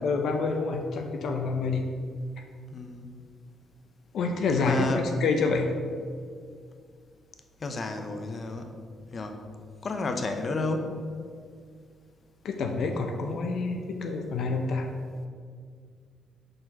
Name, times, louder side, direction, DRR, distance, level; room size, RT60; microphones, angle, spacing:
voice 1, 0.0-1.9 4.1-5.7 12.4-14.9, left 4 dB, 70° left, 4 dB, 0.7 m, -27 dB
voice 2, 2.7-3.1 4.5-5.1 7.6-8.7 9.1-9.4 9.8-11.0, left 3 dB, 40° left, 6 dB, 0.8 m, -31 dB
6.3 x 4.5 x 5.9 m, 2.1 s
cardioid pair, 90°, 0 cm